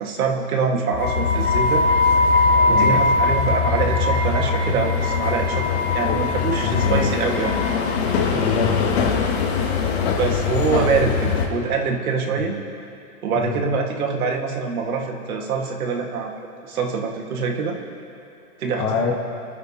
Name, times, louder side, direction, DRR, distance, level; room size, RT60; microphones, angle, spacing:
voice 1, 0.0-1.9 2.7-5.7 5.9-7.5 10.2-12.6 13.2-16.3 16.7-17.8 18.6-18.9, right 5 dB, 70° right, 2 dB, 1.9 m, -24 dB
sound 1, 0.9-11.5, left 4 dB, 45° left, 2.4 m, -21 dB
voice 2, 2.7-3.0 6.0-6.2 6.6-7.1 8.3-9.2 12.3-12.5 13.4-13.6 18.8-19.1, left 6 dB, 20° left, 1 dB, 1.2 m, -25 dB
27.5 x 9.4 x 2.9 m, 2.8 s
hypercardioid pair, 160°, 45 cm